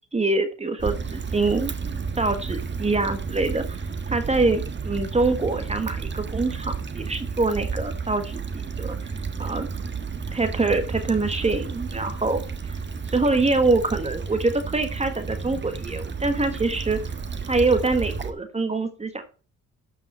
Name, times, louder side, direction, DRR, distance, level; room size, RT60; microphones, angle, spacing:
voice 1, 0.0-3.8 4.1-9.1 9.4-9.7 10.3-12.8 13.1-17.0 17.5-19.2, right 3 dB, 20° right, 8 dB, 1.4 m, -25 dB
Stream / Traffic noise roadway noise / Trickle dribble, 0.8-18.3, right 5 dB, 35° right, 1.4 m, -32 dB
12.5 x 5.5 x 4.3 m, 0.37 s
cardioid pair, 90°, 30 cm